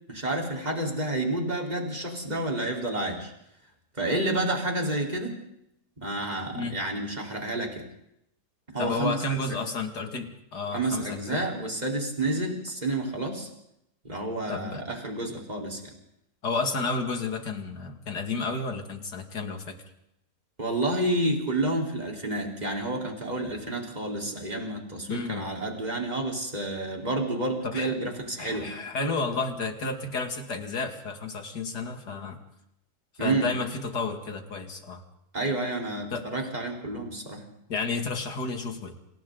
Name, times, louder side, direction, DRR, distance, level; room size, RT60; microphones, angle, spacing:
voice 1, 0.1-3.3 4.0-5.4 6.0-7.9 8.7-9.2 9.5-9.6 10.7-13.5 14.0-15.8 20.6-28.7 33.2-33.5 35.3-37.4, right 2 dB, 25° right, 0 dB, 4.6 m, -29 dB
voice 2, 8.8-11.5 14.5-14.8 16.4-19.8 25.1-25.5 27.6-27.9 28.4-32.4 33.1-35.0 36.1-36.3 37.7-39.0, left 3 dB, 75° left, 5 dB, 3.0 m, -31 dB
29.0 x 28.0 x 4.1 m, 0.79 s
omnidirectional pair, 1.8 m